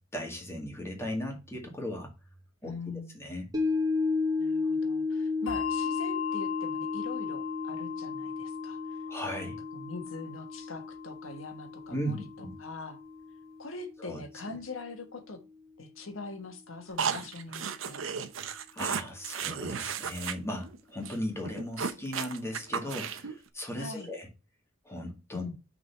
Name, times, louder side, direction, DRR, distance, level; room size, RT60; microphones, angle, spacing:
voice 1, 0.1-2.1 2.6-2.7 3.1-3.5 9.1-9.6 11.9-12.6 14.0-14.2 18.7-24.3 24.8-25.4, equal, 15° left, 2.0 m, -37 dB
voice 2, 2.6-3.1 4.4-9.0 9.4-13.0 13.6-15.4 15.8-18.0 23.8-24.1 25.3-25.5, left 3 dB, 90° left, 1.4 m, -42 dB
sound 1, 3.5-13.9 14.3-14.4, left 3 dB, 20° right, 1.6 m, -34 dB
Bell, 5.5-12.3, left 9 dB, 70° left, 1.7 m, -39 dB
sound 2, 17.0-20.3 20.6-20.8 21.0-21.2 21.4-23.4, right 6 dB, 75° right, 0.8 m, -34 dB
6.2 x 3.9 x 5.8 m
head